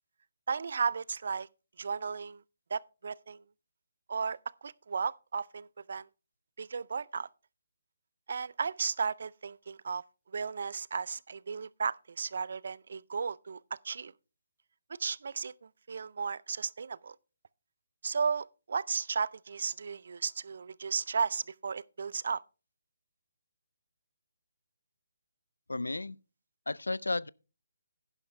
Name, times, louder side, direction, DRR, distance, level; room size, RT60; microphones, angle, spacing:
voice 1, 0.5-1.5 1.8-2.4 2.7-3.4 4.1-6.1 6.6-7.3 8.3-14.1 15.0-17.2 18.0-22.4, right 5 dB, 60° right, 0.4 m, -34 dB
voice 2, 25.7-26.2 26.7-27.3, left 2 dB, 90° left, 0.4 m, -33 dB
11.0 x 10.5 x 3.2 m
figure-of-eight pair, 150°, 0 cm